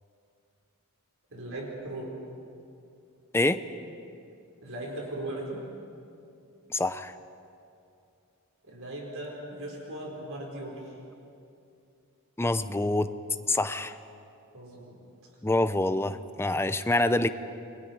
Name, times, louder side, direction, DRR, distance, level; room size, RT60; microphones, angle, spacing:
voice 1, 1.3-2.1 4.6-5.6 8.6-10.9 14.5-15.0, right 1 dB, 65° right, -2 dB, 4.8 m, -38 dB
voice 2, 6.7-7.1 12.4-13.1 13.5-14.0 15.4-17.3, left 2 dB, 10° left, 11 dB, 0.6 m, -26 dB
30.0 x 23.0 x 4.7 m, 2.6 s
head